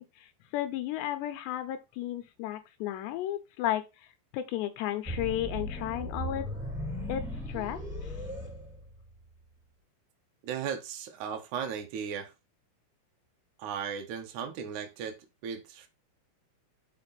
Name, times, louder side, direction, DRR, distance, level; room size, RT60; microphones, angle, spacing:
voice 1, 0.0-4.1 4.3-6.5 7.1-8.2, left 12 dB, 80° left, 2.9 m, -34 dB
sound 1, 5.0-9.3, equal, ahead, 3.3 m, -37 dB
voice 2, 10.4-12.3 13.6-15.9, right 7 dB, 80° right, 1.7 m, -36 dB
6.7 x 5.2 x 4.0 m
omnidirectional pair, 5.1 m